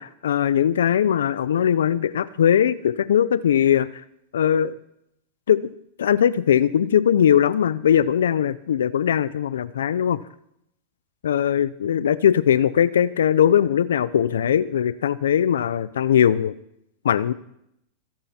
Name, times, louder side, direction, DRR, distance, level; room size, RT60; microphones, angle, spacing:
voice 1, 0.0-3.9 4.3-4.7 5.5-5.7 6.0-10.2 11.2-16.5 17.0-17.3, left 9 dB, 85° left, 17 dB, 0.6 m, -20 dB
22.5 x 11.5 x 4.4 m, 0.75 s
hypercardioid pair, 115°, 0 cm